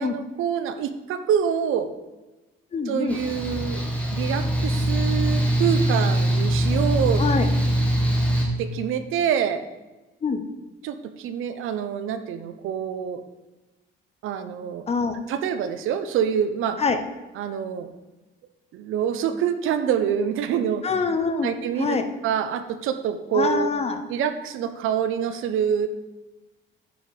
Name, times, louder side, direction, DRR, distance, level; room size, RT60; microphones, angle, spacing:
voice 1, 0.0-1.9 2.9-3.8 4.1-7.2 8.6-9.7 10.8-13.2 14.2-14.8 15.3-16.8 17.3-17.9 18.7-20.8 21.4-22.0 22.2-23.7 24.1-25.9, right 8 dB, 75° right, 10 dB, 0.7 m, -26 dB
voice 2, 2.7-3.2 7.2-7.5 10.2-10.4 14.9-15.2 16.8-17.0 20.8-21.5 21.8-22.0 23.3-24.0, left 5 dB, 30° left, 8 dB, 0.7 m, -24 dB
Mechanical fan, 3.1-8.5, right 1 dB, 5° left, 1.4 m, -22 dB
8.6 x 5.1 x 5.1 m, 1.1 s
cardioid pair, 140°, 21 cm